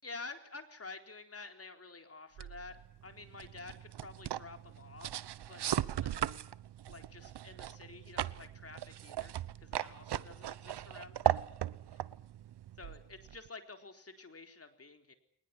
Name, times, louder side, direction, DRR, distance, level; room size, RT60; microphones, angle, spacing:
voice 1, 0.0-2.8 3.0-5.1 5.5-6.4 6.9-9.3 9.6-11.3 11.9-12.0 12.8-15.1, left 3 dB, 35° left, 6 dB, 4.2 m, -50 dB
sound 1, 2.4-13.5, right 12 dB, 70° right, 1.0 m, -38 dB
22.5 x 20.5 x 9.8 m, 0.68 s
cardioid pair, 75°, 41 cm